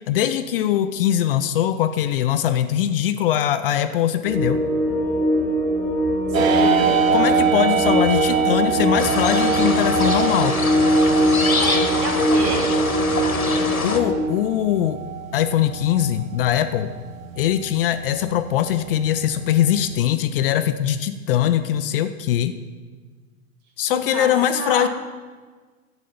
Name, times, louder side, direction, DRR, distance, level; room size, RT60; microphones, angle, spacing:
voice 1, 0.1-4.6 7.1-10.6 13.8-15.0 15.3-16.9 17.4-22.5 23.8-24.9, left 11 dB, 40° left, 11 dB, 0.6 m, -21 dB
sound 1, 4.2-14.2, equal, 5° left, 1.9 m, -21 dB
voice 2, 6.3-7.0 11.4-12.7 23.9-24.9, right 3 dB, 45° right, 3 dB, 2.6 m, -29 dB
sound 2, 6.3-19.9, right 8 dB, 70° right, 1.0 m, -26 dB
sound 3, 9.0-14.0, left 3 dB, 85° left, 1.5 m, -25 dB
12.0 x 8.3 x 7.1 m, 1.4 s
figure-of-eight pair, 100°, 42 cm